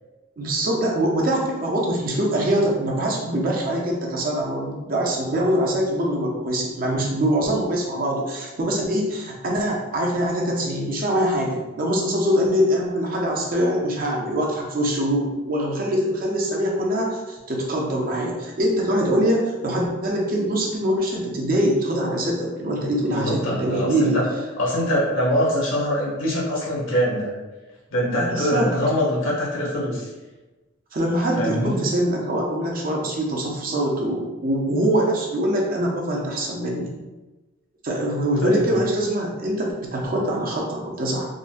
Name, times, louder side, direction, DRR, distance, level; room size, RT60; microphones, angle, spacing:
voice 1, 0.4-24.2 28.2-28.7 30.9-36.9 37.8-41.3, equal, 45° right, -2 dB, 0.6 m, -23 dB
voice 2, 23.1-24.2 24.6-27.3 27.9-30.1 31.4-31.7 38.4-38.7, equal, 70° left, -4 dB, 1.1 m, -23 dB
3.8 x 2.1 x 2.5 m, 1.1 s
head